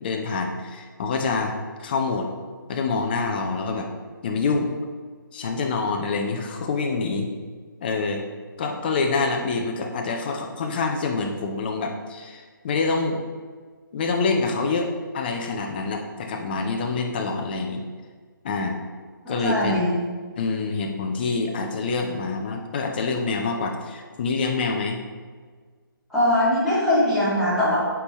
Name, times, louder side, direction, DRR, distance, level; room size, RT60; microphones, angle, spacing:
voice 1, 0.0-2.3 2.7-3.9 4.2-4.7 5.3-7.3 7.8-8.2 8.6-13.2 13.9-17.8 18.4-18.8 19.3-19.8 20.4-25.0, left 4 dB, 25° left, 3 dB, 0.6 m, -26 dB
voice 2, 19.2-19.9 26.1-27.8, left 1 dB, ahead, -14 dB, 2.1 m, -21 dB
9.3 x 4.7 x 3.1 m, 1.6 s
figure-of-eight pair, 145°, 12 cm